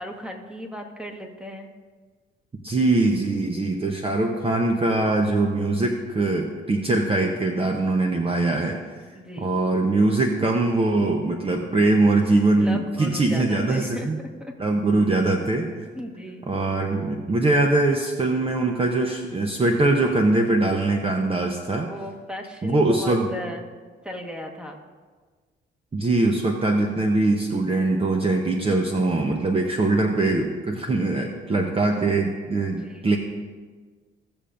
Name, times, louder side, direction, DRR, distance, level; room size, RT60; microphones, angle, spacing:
voice 1, 0.0-1.7 9.1-9.5 12.6-14.5 15.9-16.4 21.9-23.7 24.0-24.8 29.8-30.0 32.7-33.1, left 1 dB, 5° right, 2 dB, 1.4 m, -36 dB
voice 2, 2.6-8.8 9.4-14.2 14.6-15.7 16.5-21.9 22.6-23.3 25.9-33.2, right 2 dB, 30° right, 2 dB, 0.9 m, -22 dB
16.5 x 6.9 x 2.6 m, 1.5 s
cardioid pair, 90°, 20 cm